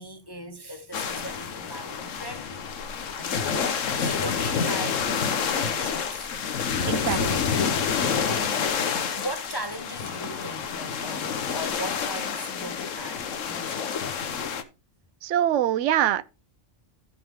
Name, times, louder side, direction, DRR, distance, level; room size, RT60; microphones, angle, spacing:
voice 1, 0.0-2.6 3.2-5.1 5.5-6.5 6.9-7.8 8.3-8.7 9.0-14.1, right 1 dB, 20° left, 0.8 m, -39 dB
sound 1, 0.9-14.6, left 6 dB, 85° left, 1.3 m, -28 dB
voice 2, 6.8-7.2 15.2-16.2, right 11 dB, 75° right, 0.9 m, -23 dB
15.0 x 5.5 x 3.6 m
omnidirectional pair, 1.3 m